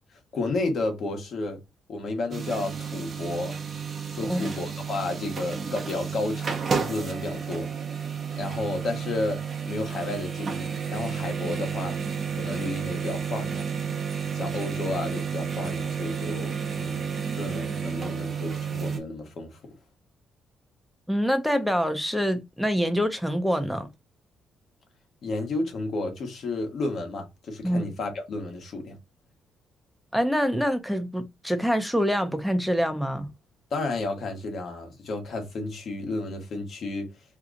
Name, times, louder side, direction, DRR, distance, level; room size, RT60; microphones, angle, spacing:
voice 1, 0.1-1.6 1.9-3.7 4.1-7.7 8.4-12.0 12.3-13.6 14.3-19.6 25.2-29.0 33.7-37.1, left 2 dB, 60° left, 1.1 m, -32 dB
sound 1, 2.3-19.0, right 6 dB, 40° right, 0.8 m, -31 dB
voice 2, 4.2-4.5 21.1-23.9 27.6-27.9 30.1-33.3, equal, ahead, 0.7 m, -25 dB
2.8 x 2.3 x 3.8 m
cardioid pair, 90°, 0 cm